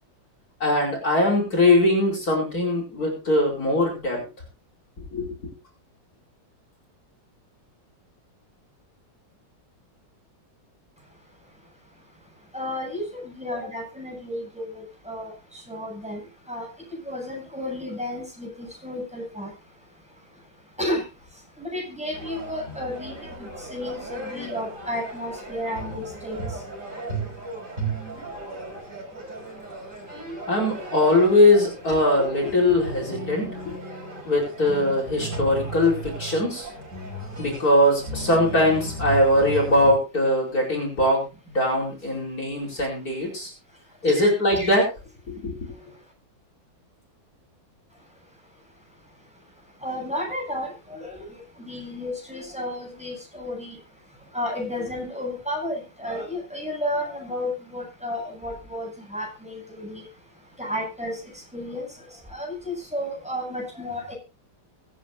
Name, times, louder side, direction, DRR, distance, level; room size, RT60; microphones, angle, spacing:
voice 1, 0.6-4.2 5.1-5.3 30.5-33.7 34.2-36.7 37.4-41.3 41.5-43.5 44.0-44.9 45.3-45.5, left 1 dB, 50° left, 0 dB, 5.0 m, -21 dB
voice 2, 12.5-15.3 15.7-16.2 16.5-16.7 17.1-19.5 20.8-21.0 21.6-26.4 44.1-44.7 49.8-51.3 51.6-53.8 54.3-60.0 60.6-61.2 61.5-61.9 62.3-64.1, left 1 dB, 5° right, -1 dB, 7.9 m, -32 dB
sound 1, 22.1-39.9, right 2 dB, 40° right, 5.8 m, -35 dB
23.5 x 9.4 x 2.7 m, 0.30 s
omnidirectional pair, 2.0 m